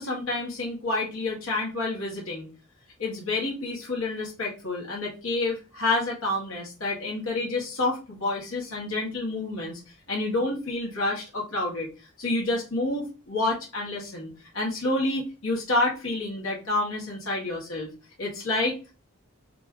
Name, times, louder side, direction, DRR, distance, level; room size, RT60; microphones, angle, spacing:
voice 1, 0.0-2.5 3.0-9.8 10.1-11.9 12.2-17.9 18.2-18.7, left 2 dB, 80° left, -3 dB, 2.3 m, -29 dB
5.0 x 3.3 x 3.2 m, 0.32 s
head